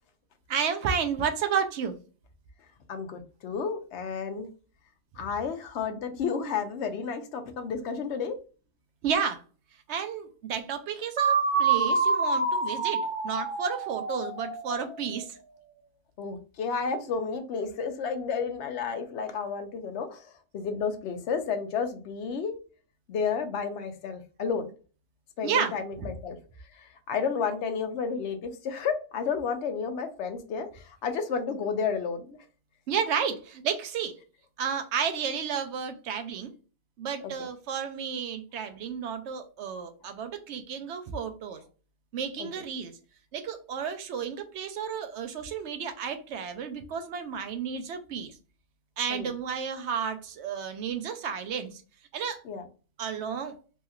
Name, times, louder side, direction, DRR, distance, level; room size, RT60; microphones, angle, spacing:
voice 1, 0.5-1.9 9.0-9.4 9.9-15.4 25.4-26.1 32.9-34.2 34.6-36.5 37.0-41.6 42.1-42.9 43.3-48.4 49.0-51.8 52.1-52.4 53.0-53.6, right 7 dB, 70° right, 0.8 m, -32 dB
voice 2, 2.9-4.5 5.2-8.4 16.2-22.5 23.1-24.7 25.4-26.4 26.8-32.4 42.4-42.5 49.1-49.3 52.4-52.6, left 5 dB, 65° left, 0.8 m, -31 dB
sound 1, 11.2-15.0, right 4 dB, 40° right, 0.4 m, -27 dB
3.1 x 2.8 x 2.3 m
omnidirectional pair, 1.3 m